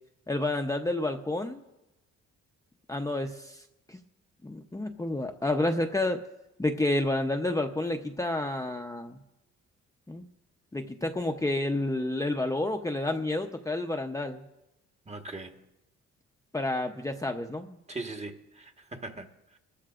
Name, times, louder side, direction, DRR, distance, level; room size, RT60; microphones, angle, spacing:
voice 1, 0.3-1.6 2.9-3.6 3.9-4.0 4.4-6.2 6.6-9.2 10.1-10.2 10.7-14.4 16.5-17.8, left 2 dB, 10° left, 0.8 m, -30 dB
voice 2, 15.1-15.6 17.9-19.3, right 2 dB, 20° right, 1.4 m, -40 dB
24.0 x 13.5 x 2.5 m
cardioid pair, 90°, 30 cm